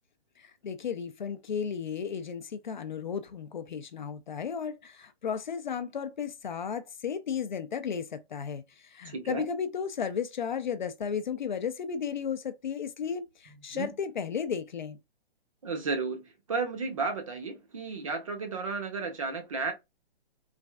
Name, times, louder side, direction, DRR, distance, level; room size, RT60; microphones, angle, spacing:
voice 1, 0.4-15.0, left 7 dB, 50° left, 0.5 m, -34 dB
voice 2, 9.0-9.4 13.7-13.9 15.6-19.7, right 4 dB, 35° right, 0.6 m, -33 dB
3.2 x 2.4 x 2.3 m
hypercardioid pair, 170°, 31 cm